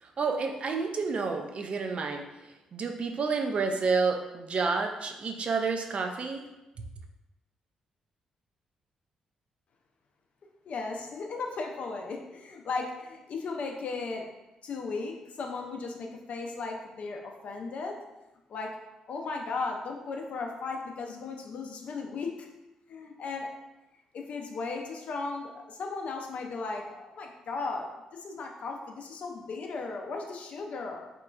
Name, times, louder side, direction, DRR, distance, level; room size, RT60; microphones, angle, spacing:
voice 1, 0.0-2.2 2.7-6.4 6.8-6.9, right 4 dB, 50° right, 4 dB, 0.3 m, -29 dB
voice 2, 10.6-14.2 14.6-18.0 18.5-18.7 19.1-22.5 22.9-23.5 24.1-31.1, left 4 dB, 60° left, 2 dB, 0.4 m, -36 dB
2.9 x 2.3 x 2.2 m, 1.0 s
hypercardioid pair, 40°, 3 cm